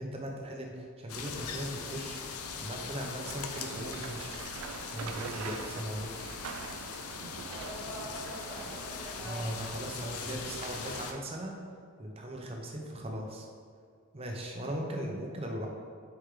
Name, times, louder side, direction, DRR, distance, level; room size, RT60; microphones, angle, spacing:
voice 1, 0.0-4.3 4.9-6.1 9.2-11.6 12.0-13.5 14.1-15.7, right 1 dB, 25° right, 1 dB, 0.7 m, -38 dB
sound 1, 1.1-11.1, left 5 dB, 90° left, 0.6 m, -41 dB
sound 2, 3.2-11.2, right 6 dB, 70° right, 0.3 m, -45 dB
voice 2, 7.4-9.7, equal, 10° right, -11 dB, 1.1 m, -44 dB
6.6 x 4.6 x 3.7 m, 2.1 s
head